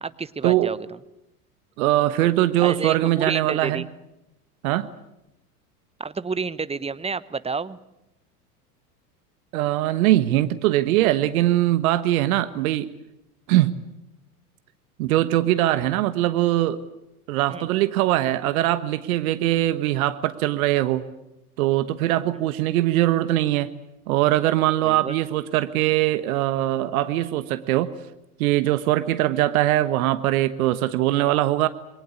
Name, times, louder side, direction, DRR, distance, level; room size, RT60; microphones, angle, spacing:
voice 1, 0.0-0.8 2.6-3.9 6.0-7.8 17.5-17.7 24.8-25.2, right 4 dB, 15° right, 16 dB, 1.0 m, -29 dB
voice 2, 1.8-3.8 4.6-4.9 9.5-12.9 13.5-13.7 15.0-16.8 17.3-21.0 21.6-23.7 24.1-27.9 28.4-31.7, right 14 dB, 65° right, 12 dB, 1.4 m, -21 dB
28.0 x 23.0 x 8.4 m, 0.90 s
hypercardioid pair, 85°, 45 cm